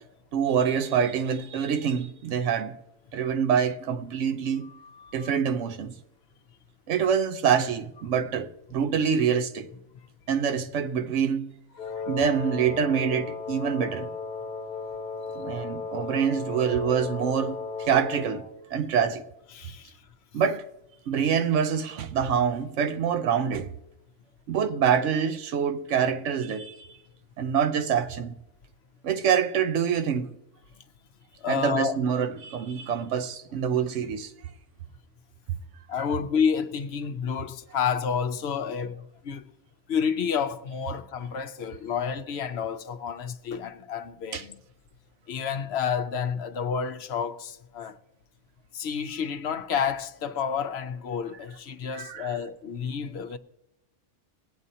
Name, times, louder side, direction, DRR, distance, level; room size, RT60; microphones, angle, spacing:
voice 1, 0.3-2.8 3.1-4.7 5.1-5.9 6.9-9.7 10.3-11.6 12.1-14.1 15.4-18.5 18.7-19.2 20.3-20.6 21.1-23.7 24.5-26.9 27.4-28.3 29.0-30.3 31.5-34.3 44.3-44.4 51.9-52.3, right 7 dB, 80° right, 1.0 m, -26 dB
voice 2, 4.6-5.3 11.8-12.1 15.4-15.5 19.5-20.0 31.4-32.0 35.9-39.4 39.9-44.6 45.3-48.0 48.7-53.4, left 7 dB, 65° left, 0.8 m, -30 dB
Wind instrument woodwind instrument, 11.8-18.6, left 4 dB, 45° left, 1.1 m, -35 dB
21.5 x 8.8 x 2.7 m
omnidirectional pair, 1.2 m